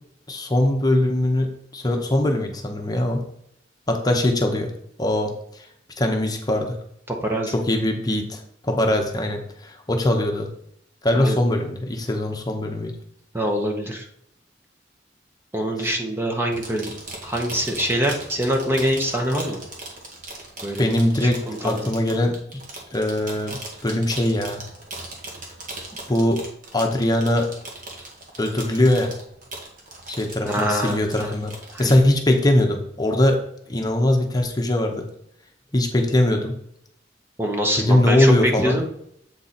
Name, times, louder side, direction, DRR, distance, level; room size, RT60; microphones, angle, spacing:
voice 1, 0.3-3.2 3.9-4.7 5.0-5.3 6.0-6.8 7.5-10.5 11.0-13.0 15.8-15.9 20.8-22.4 22.9-24.6 26.1-26.4 26.7-27.5 28.4-29.1 30.1-31.5 31.8-33.4 33.7-35.1 35.7-36.6 37.8-38.8, left 1 dB, 20° left, 2 dB, 0.9 m, -21 dB
voice 2, 7.1-7.6 11.1-11.4 13.3-14.1 15.5-16.9 17.2-19.6 20.6-20.9 21.2-21.8 30.4-31.3 31.7-31.9 37.4-38.8, equal, 15° right, 2 dB, 0.9 m, -24 dB
sound 1, 16.5-32.0, right 2 dB, 45° right, 1.6 m, -38 dB
7.8 x 4.5 x 4.2 m, 0.73 s
head